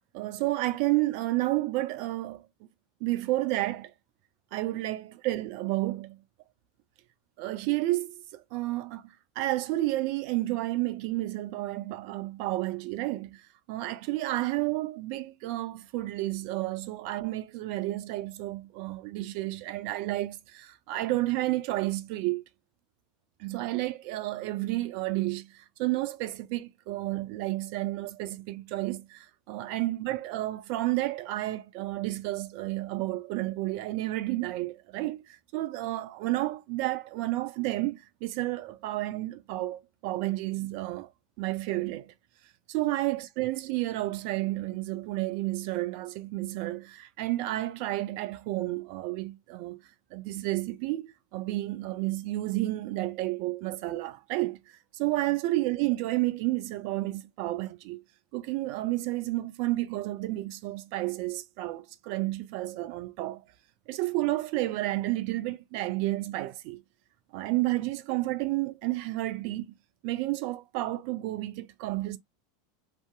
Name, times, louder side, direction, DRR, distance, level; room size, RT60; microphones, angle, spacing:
voice 1, 0.1-2.4 3.0-3.9 4.5-6.2 7.4-13.4 13.7-22.4 23.4-41.1 41.4-42.1 42.7-49.8 50.1-54.6 54.9-58.0 58.3-63.4 63.9-66.8 67.3-69.8 70.0-72.2, right 18 dB, 55° right, 0.4 m, -31 dB
2.6 x 2.3 x 2.4 m
figure-of-eight pair, 80°, 0 cm